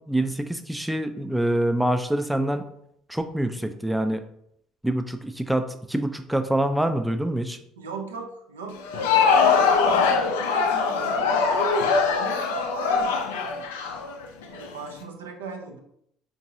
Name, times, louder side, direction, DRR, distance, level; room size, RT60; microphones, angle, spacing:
voice 1, 0.1-2.6 3.1-4.2 4.8-7.6, right 1 dB, 5° right, 8 dB, 0.4 m, -25 dB
voice 2, 7.8-11.7 12.1-13.5 14.5-15.8, right 4 dB, 80° right, 3 dB, 0.4 m, -39 dB
Crowd, 8.8-14.7, left 5 dB, 70° left, 0.4 m, -22 dB
4.5 x 2.5 x 2.7 m, 0.72 s
figure-of-eight pair, 55°, 0 cm